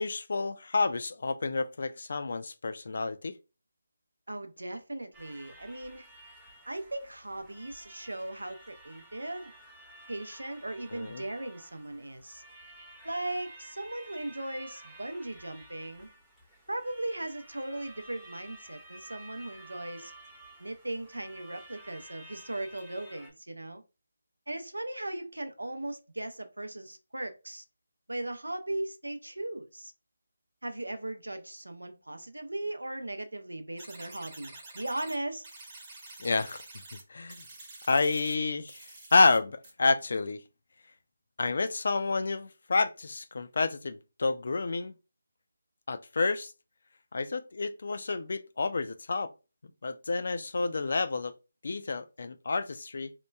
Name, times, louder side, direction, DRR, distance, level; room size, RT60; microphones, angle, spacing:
voice 1, 0.0-3.4 10.9-11.2 36.2-36.6 36.9-37.4 37.9-40.4 41.4-44.9 45.9-46.5 47.1-49.3 49.8-51.3 51.6-53.1, left 3 dB, 60° left, 0.3 m, -29 dB
voice 2, 4.3-6.1 6.7-9.5 10.1-12.4 13.0-16.1 16.7-20.1 20.6-23.8 24.5-27.6 28.1-29.9 30.6-35.5, right 1 dB, 90° right, 0.5 m, -38 dB
sound 1, 5.1-23.3, right 1 dB, 5° right, 0.7 m, -52 dB
sound 2, 33.8-35.2 35.4-37.0 37.3-38.3 38.7-39.4 39.6-39.7, right 2 dB, 30° right, 1.0 m, -48 dB
2.9 x 2.1 x 2.2 m
figure-of-eight pair, 155°, 0 cm